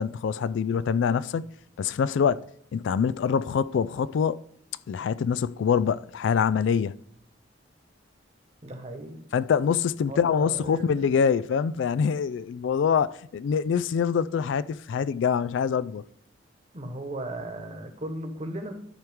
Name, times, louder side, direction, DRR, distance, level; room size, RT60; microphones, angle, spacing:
voice 1, 0.0-1.4 1.8-2.4 2.7-4.4 4.9-6.9 9.3-16.0, left 7 dB, 70° left, 0.3 m, -25 dB
voice 2, 8.6-9.2 10.1-11.1 16.7-18.7, right 1 dB, 35° right, 1.2 m, -36 dB
13.5 x 4.6 x 3.6 m
head